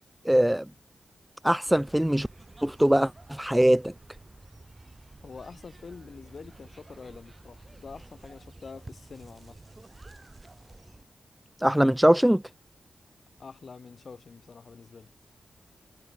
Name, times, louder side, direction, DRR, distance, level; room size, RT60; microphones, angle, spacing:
voice 1, 0.2-0.6 1.4-2.3 2.6-3.9 11.6-12.4, equal, 5° right, 0.7 m, -22 dB
sound 1, 1.7-11.0, right 2 dB, 30° right, 6.6 m, -50 dB
voice 2, 5.2-9.6 13.4-15.1, left 5 dB, 60° left, 4.1 m, -46 dB
cardioid pair, 70°, 0 cm